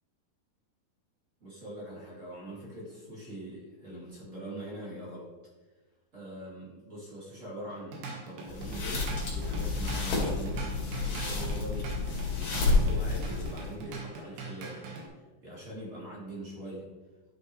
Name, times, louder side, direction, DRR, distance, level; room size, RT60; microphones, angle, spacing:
voice 1, 1.4-5.3 6.1-11.9 12.2-14.9 15.4-16.9, right 1 dB, 40° right, -5 dB, 1.1 m, -42 dB
Drum kit / Drum, 7.7-15.1, right 3 dB, 75° right, 3.0 m, -42 dB
sound 1, 8.5-13.7, left 3 dB, 70° left, 3.7 m, -30 dB
12.0 x 5.5 x 3.0 m, 1.3 s
omnidirectional pair, 4.2 m